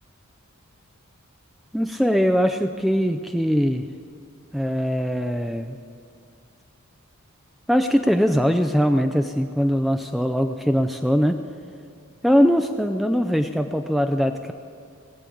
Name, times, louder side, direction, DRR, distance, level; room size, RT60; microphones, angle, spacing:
voice 1, 1.7-3.9 4.5-5.8 7.7-11.4 12.2-14.5, equal, ahead, 6 dB, 0.4 m, -21 dB
20.0 x 8.5 x 8.5 m, 2.3 s
head